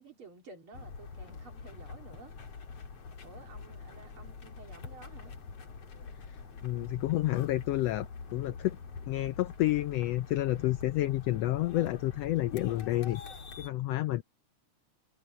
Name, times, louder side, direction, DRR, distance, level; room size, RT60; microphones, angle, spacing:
voice 1, 0.0-2.3 3.2-5.3, right 4 dB, 45° right, 3.4 m, -52 dB
sound 1, 0.7-13.7, left 5 dB, 55° left, 3.7 m, -45 dB
voice 2, 6.6-8.8 9.1-13.2 13.6-14.2, left 16 dB, 80° left, 1.5 m, -30 dB
omnidirectional pair, 3.5 m